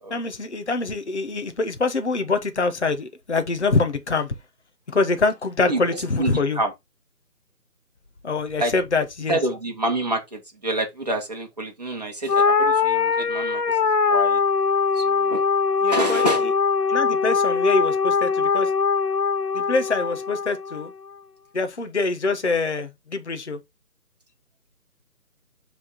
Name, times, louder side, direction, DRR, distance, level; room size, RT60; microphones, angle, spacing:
voice 1, 0.1-4.3 4.9-6.6 8.2-9.4 15.8-16.5 16.9-18.7 19.5-20.9 21.5-23.6, left 3 dB, 45° left, 0.9 m, -24 dB
voice 2, 6.2-6.7 8.6-8.7 9.3-14.4 14.9-15.4 15.9-16.4, right 1 dB, 25° right, 1.1 m, -27 dB
sound 1, 12.3-20.9, left 5 dB, 85° left, 0.9 m, -22 dB
7.4 x 3.5 x 3.9 m
figure-of-eight pair, 155°, 47 cm